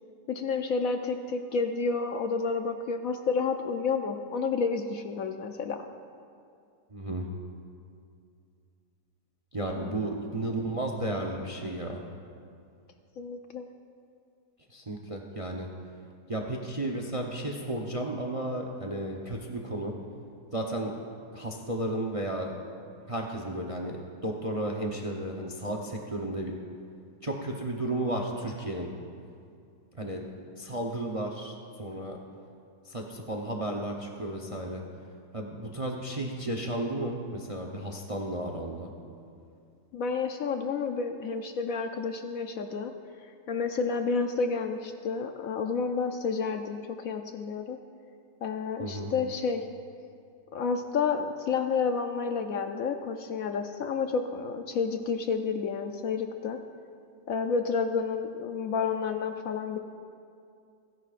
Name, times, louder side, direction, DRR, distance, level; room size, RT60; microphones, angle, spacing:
voice 1, 0.3-5.8 9.8-10.1 13.2-13.7 39.9-42.9 43.5-47.8 48.4-49.7 50.5-56.6 57.3-59.8, left 5 dB, 65° left, 6 dB, 0.9 m, -30 dB
voice 2, 6.9-7.3 9.5-12.0 14.7-15.7 16.3-19.9 20.5-20.9 21.3-22.5 23.1-26.5 27.2-28.9 30.0-30.3 30.6-31.5 31.8-32.2 32.9-34.8 35.3-38.9 48.8-49.1, right 1 dB, 30° right, 1 dB, 0.6 m, -33 dB
29.5 x 10.5 x 2.5 m, 2.4 s
omnidirectional pair, 1.8 m